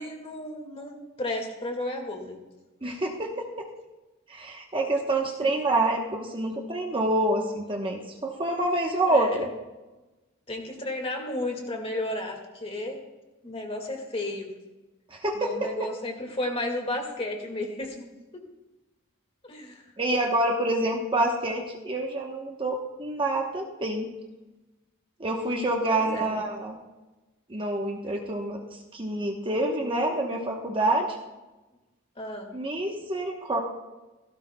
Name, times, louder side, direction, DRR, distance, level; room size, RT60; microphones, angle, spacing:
voice 1, 0.0-2.4 5.4-5.5 9.1-9.5 10.5-13.0 13.4-14.5 15.3-18.0 19.4-19.8 25.9-26.3 32.2-32.5, left 1 dB, 30° left, 2 dB, 1.9 m, -33 dB
voice 2, 2.8-3.7 4.3-9.5 15.1-15.7 20.0-24.1 25.2-26.8 27.5-28.6 28.9-31.2 32.5-33.6, right 2 dB, 25° right, 1 dB, 1.0 m, -27 dB
17.0 x 16.0 x 2.3 m, 1.1 s
head